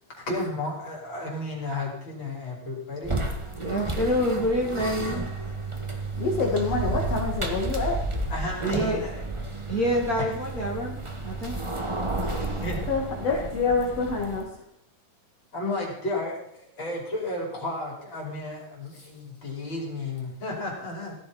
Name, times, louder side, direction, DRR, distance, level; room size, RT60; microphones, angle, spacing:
voice 1, 0.1-3.2 8.3-9.6 10.2-10.3 11.7-11.9 12.2-12.8 13.3-13.5 15.5-21.2, left 2 dB, 40° left, -3 dB, 5.8 m, -33 dB
sound 1, 3.0-14.5, right 2 dB, 15° right, 1.1 m, -31 dB
voice 2, 3.5-5.2 8.6-9.0 9.7-11.6, equal, 30° right, -1 dB, 2.3 m, -27 dB
voice 3, 6.2-8.0 12.9-14.5, left 4 dB, 55° left, 0 dB, 3.0 m, -26 dB
17.5 x 14.5 x 4.3 m, 0.70 s
omnidirectional pair, 3.4 m